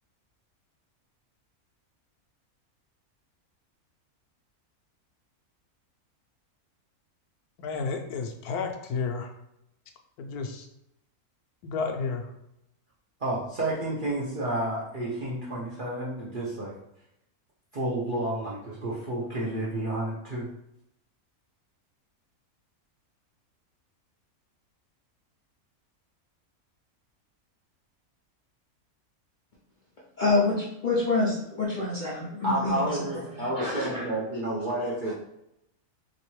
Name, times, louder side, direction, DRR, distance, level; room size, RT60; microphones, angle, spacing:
voice 1, 7.6-9.3 10.2-10.6 11.6-12.2, left 5 dB, 85° left, 4 dB, 1.1 m, -31 dB
voice 2, 13.2-16.7 17.7-20.5 32.4-35.1, right 1 dB, 50° right, -5 dB, 0.6 m, -30 dB
voice 3, 30.2-34.1, left 2 dB, 55° left, -6 dB, 0.5 m, -27 dB
3.2 x 3.0 x 3.0 m, 0.81 s
omnidirectional pair, 1.6 m